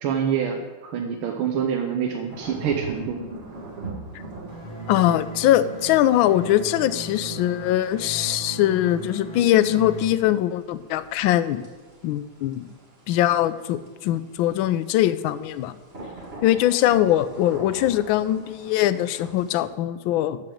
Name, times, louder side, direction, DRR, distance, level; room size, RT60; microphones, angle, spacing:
voice 1, 0.0-3.2, right 7 dB, 85° right, 1 dB, 1.8 m, -26 dB
sound 1, 2.3-19.7, right 3 dB, 30° right, 2.2 m, -42 dB
sound 2, 4.5-10.1, right 2 dB, 20° left, 1.5 m, -37 dB
voice 2, 4.9-11.6 12.0-12.7 13.1-15.8 16.4-20.4, left 13 dB, 80° left, 14 dB, 1.3 m, -22 dB
13.5 x 5.1 x 7.7 m, 1.3 s
omnidirectional pair, 2.3 m